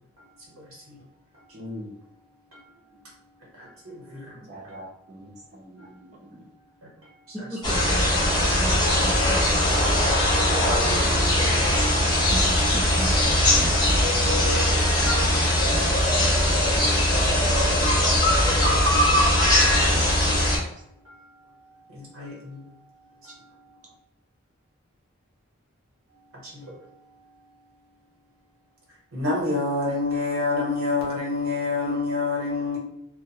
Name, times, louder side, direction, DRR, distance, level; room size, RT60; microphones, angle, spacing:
voice 1, 0.2-1.0 1.3-1.6 2.5-5.3 5.8-6.4 6.8-11.0 17.4-23.9 26.1-27.6 29.1-32.8, left 3 dB, 85° right, -4 dB, 1.2 m, -33 dB
voice 2, 1.5-2.0 4.5-6.4 7.8-7.9 16.0-16.1 23.3-23.4, equal, 35° right, -2 dB, 0.6 m, -43 dB
voice 3, 7.3-11.2 12.3-13.2 13.5-14.8 15.2-17.0 17.6-17.8 18.1-18.3 19.6-19.8, right 1 dB, 5° right, -7 dB, 0.3 m, -38 dB
sound 1, 7.6-20.6, left 1 dB, 20° left, 0.8 m, -20 dB
2.5 x 2.3 x 2.8 m, 0.79 s
head